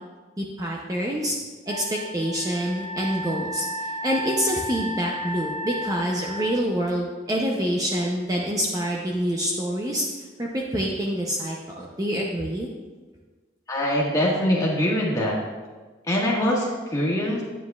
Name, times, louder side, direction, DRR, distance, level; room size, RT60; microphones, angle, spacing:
voice 1, 0.4-1.4 1.7-12.7, equal, 20° right, -2 dB, 0.6 m, -26 dB
Wind instrument woodwind instrument, 1.7-6.5, equal, 85° right, 2.0 m, -33 dB
voice 2, 13.7-15.4 16.1-17.4, equal, 20° left, -4 dB, 1.6 m, -23 dB
9.5 x 9.4 x 2.4 m, 1.3 s
head